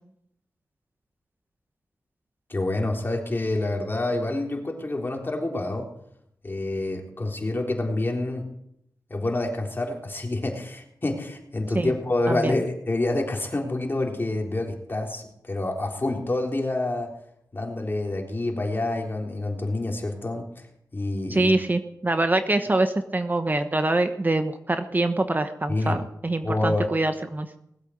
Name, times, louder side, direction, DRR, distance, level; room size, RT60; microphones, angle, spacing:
voice 1, 2.5-5.9 6.4-8.5 9.1-17.1 17.5-20.5 20.9-21.5 25.7-26.0 26.4-26.9, left 2 dB, 30° left, 1 dB, 3.7 m, -27 dB
voice 2, 21.3-27.5, right 2 dB, 30° right, 8 dB, 1.0 m, -24 dB
19.5 x 8.3 x 7.9 m, 0.77 s
cardioid pair, 70°, 7 cm